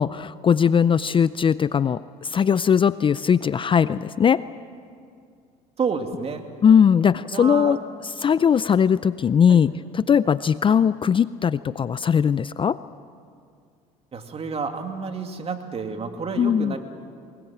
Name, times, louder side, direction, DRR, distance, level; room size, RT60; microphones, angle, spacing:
voice 1, 0.0-4.4 6.6-7.8 8.2-12.8 16.4-16.7, left 7 dB, 30° left, 16 dB, 0.4 m, -19 dB
voice 2, 5.8-6.4 7.3-7.8 9.5-9.6 14.1-16.8, right 5 dB, 35° right, 5 dB, 2.5 m, -29 dB
22.0 x 21.0 x 7.4 m, 2.3 s
supercardioid pair, 80°, 17 cm